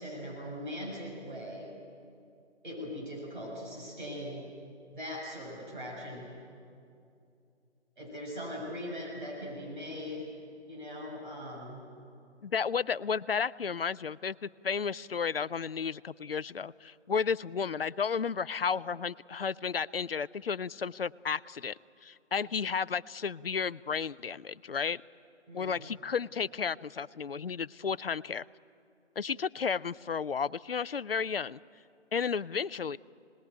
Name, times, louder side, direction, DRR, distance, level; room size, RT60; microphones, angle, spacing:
voice 1, 0.0-1.7 2.6-4.4 4.9-6.3 8.0-10.3 10.7-11.8 25.5-25.8, equal, 45° right, -3 dB, 7.0 m, -40 dB
voice 2, 12.4-21.8 22.0-25.0 25.5-28.4 29.2-31.6 32.1-33.0, left 6 dB, 55° left, 18 dB, 0.5 m, -33 dB
26.0 x 20.0 x 9.1 m, 2.5 s
figure-of-eight pair, 150°, 35 cm